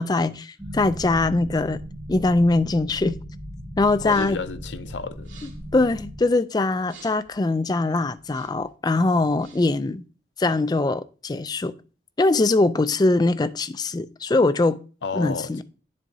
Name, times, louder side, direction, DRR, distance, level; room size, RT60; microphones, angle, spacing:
voice 1, 0.0-1.8 2.1-3.2 3.8-4.4 5.7-10.0 10.4-11.7 12.2-14.8 15.2-15.6, left 2 dB, 20° left, 0.3 m, -22 dB
sound 1, 0.6-6.2, equal, 15° right, 1.4 m, -37 dB
voice 2, 4.0-5.4 15.0-15.6, left 4 dB, 75° left, 0.6 m, -32 dB
sound 2, 4.0-4.5 5.1-5.7 6.8-7.4 8.2-8.7 9.2-9.8, right 5 dB, 85° right, 2.5 m, -50 dB
9.8 x 7.5 x 2.7 m
head